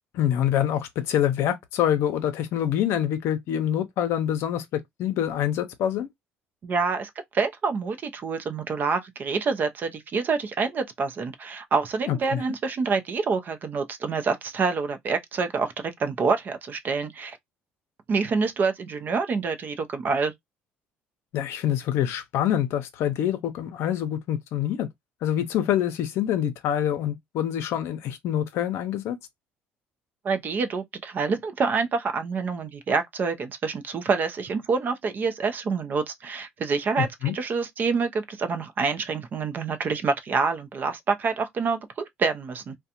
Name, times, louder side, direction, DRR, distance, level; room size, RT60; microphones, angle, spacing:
voice 1, 0.1-6.1 12.1-12.4 21.3-24.9 25.2-29.2 37.0-37.3, left 10 dB, 70° left, 0.6 m, -26 dB
voice 2, 6.6-17.4 18.1-20.3 30.2-37.1 37.3-42.8, right 4 dB, 45° right, 0.5 m, -27 dB
2.4 x 2.2 x 2.8 m
supercardioid pair, 95°, 5 cm